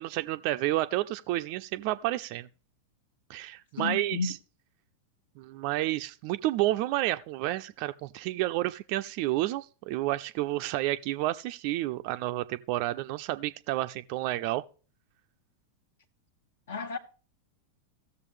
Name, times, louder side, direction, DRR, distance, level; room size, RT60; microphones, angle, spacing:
voice 1, 0.0-2.5 3.3-4.4 5.4-14.6, right 16 dB, 45° right, 0.4 m, -30 dB
voice 2, 3.8-4.3 16.7-17.0, left 4 dB, 60° left, 1.0 m, -32 dB
16.0 x 6.8 x 3.4 m
figure-of-eight pair, 90°, 0 cm